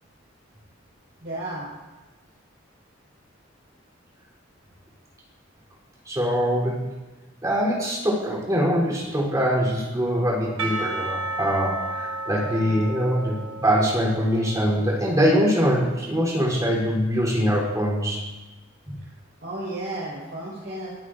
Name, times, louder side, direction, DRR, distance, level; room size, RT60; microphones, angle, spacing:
voice 1, 1.2-1.7 19.4-21.0, right 1 dB, 55° right, -7 dB, 5.0 m, -33 dB
voice 2, 6.1-6.9 7.4-18.2 18.9-19.0, equal, 20° right, -4 dB, 3.5 m, -23 dB
Percussion / Church bell, 10.6-15.8, right 2 dB, 85° right, 1.1 m, -33 dB
23.5 x 9.6 x 2.6 m, 1.2 s
head